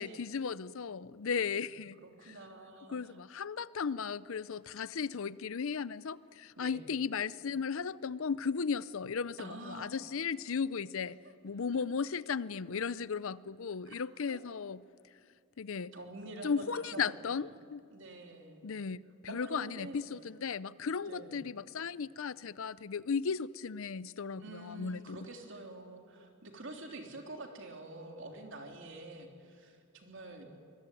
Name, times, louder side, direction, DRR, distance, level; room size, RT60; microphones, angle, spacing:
voice 1, 0.0-2.0 2.3-2.4 2.9-11.2 11.4-14.8 15.6-15.9 16.4-17.8 18.6-25.2, left 5 dB, 65° left, 0.5 m, -36 dB
voice 2, 2.0-3.2 6.6-6.8 9.4-9.9 11.2-11.3 13.8-13.9 14.3-14.4 15.9-17.4 17.9-18.6 19.3-20.1 21.1-21.4 24.4-30.5, right 2 dB, 55° right, 3.5 m, -47 dB
24.5 x 22.0 x 9.2 m
head